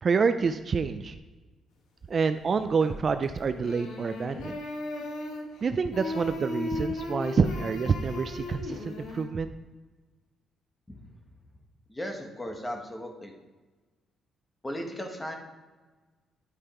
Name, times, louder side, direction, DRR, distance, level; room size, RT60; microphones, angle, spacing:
voice 1, 0.0-1.2 2.1-4.6 5.6-9.5, right 5 dB, 45° right, 10 dB, 0.4 m, -27 dB
sound 1, 2.8-3.2 3.5-5.6 5.9-9.2, left 2 dB, 85° left, 1.3 m, -36 dB
voice 2, 11.9-13.3 14.6-15.4, equal, 15° left, 3 dB, 1.5 m, -36 dB
9.9 x 5.0 x 4.4 m, 1.3 s
cardioid pair, 90°, 0 cm